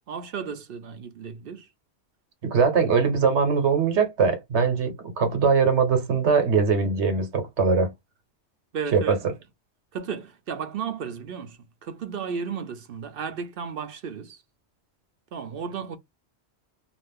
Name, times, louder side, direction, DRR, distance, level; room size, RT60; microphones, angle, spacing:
voice 1, 0.1-1.7 8.7-9.2 9.9-14.4 15.3-16.0, right 6 dB, 65° right, 0.7 m, -34 dB
voice 2, 2.4-7.9 8.9-9.2, right 5 dB, 85° right, 1.2 m, -21 dB
2.5 x 2.5 x 3.5 m
omnidirectional pair, 1.1 m